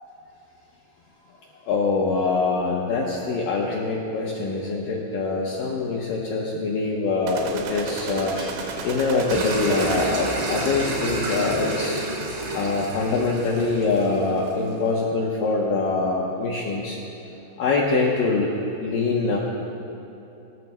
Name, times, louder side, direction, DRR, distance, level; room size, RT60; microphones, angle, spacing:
voice 1, 1.5-12.2 12.5-17.0 17.6-18.5 18.8-19.4, left 3 dB, 80° left, -3 dB, 1.9 m, -24 dB
sound 1, 7.3-10.4, right 5 dB, 85° right, 3.1 m, -33 dB
sound 2, 9.3-14.7, right 2 dB, 60° right, 3.2 m, -30 dB
20.0 x 13.5 x 2.2 m, 2.9 s
omnidirectional pair, 5.2 m